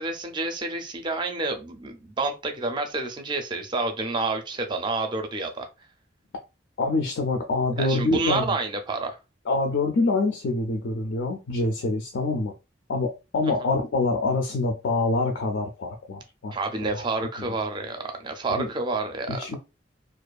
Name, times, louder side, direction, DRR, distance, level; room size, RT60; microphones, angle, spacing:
voice 1, 0.0-5.7 7.8-9.2 13.4-13.7 16.5-19.4, right 3 dB, 25° right, 0.4 m, -29 dB
voice 2, 6.8-8.5 9.5-12.5 12.9-16.5 17.1-17.5 18.5-18.7 19.3-19.6, left 3 dB, 65° left, 0.4 m, -26 dB
2.5 x 2.3 x 2.3 m
head